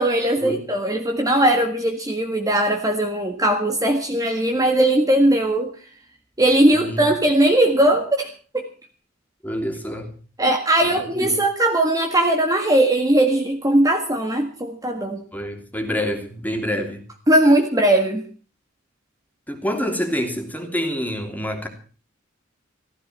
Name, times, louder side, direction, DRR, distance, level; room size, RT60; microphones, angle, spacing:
voice 1, 0.0-5.7 6.4-8.3 8.5-8.7 10.4-15.2 17.3-18.3, right 1 dB, 15° right, 3 dB, 1.7 m, -19 dB
voice 2, 6.7-7.1 9.4-10.1 10.8-11.3 15.3-17.0 19.5-21.7, equal, 10° left, 5 dB, 3.0 m, -27 dB
15.5 x 14.5 x 5.8 m, 0.40 s
head